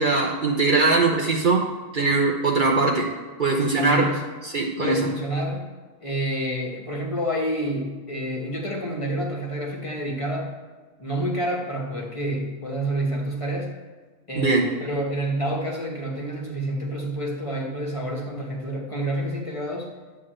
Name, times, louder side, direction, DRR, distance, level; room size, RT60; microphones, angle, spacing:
voice 1, 0.0-1.6 1.9-3.1 3.4-4.1 4.4-5.0 14.3-14.6, right 3 dB, 45° right, -1 dB, 1.0 m, -21 dB
voice 2, 3.8-4.2 4.8-5.7 6.0-10.5 11.0-13.7 14.3-19.9, right 1 dB, 25° left, -1 dB, 1.4 m, -28 dB
11.0 x 3.9 x 7.7 m, 1.4 s
omnidirectional pair, 1.3 m